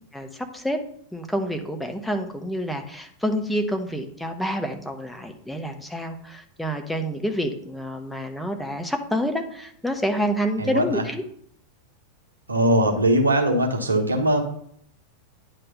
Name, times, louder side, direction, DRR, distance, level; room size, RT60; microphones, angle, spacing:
voice 1, 0.1-0.8 1.1-11.2, equal, 5° left, 5 dB, 0.9 m, -28 dB
voice 2, 10.6-11.0 12.5-14.4, right 1 dB, 80° right, 3 dB, 1.2 m, -20 dB
9.7 x 3.3 x 5.3 m, 0.66 s
figure-of-eight pair, 90°, 0 cm